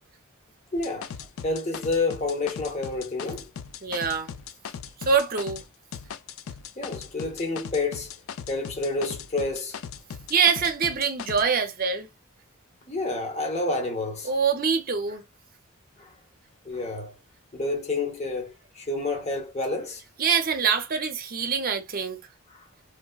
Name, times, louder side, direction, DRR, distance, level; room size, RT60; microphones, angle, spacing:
voice 1, 0.7-1.1 1.4-3.5 6.8-8.1 8.5-9.8 12.9-14.4 16.0-16.1 16.6-17.1 17.5-20.0 22.5-22.6, left 2 dB, 35° left, 0.9 m, -29 dB
sound 1, 0.8-5.7 5.9-11.4, left 7 dB, 85° left, 0.3 m, -39 dB
voice 2, 3.8-4.3 5.0-5.6 10.3-12.1 14.2-15.2 20.2-22.2, right 6 dB, 45° right, 0.6 m, -24 dB
3.3 x 2.1 x 2.3 m
head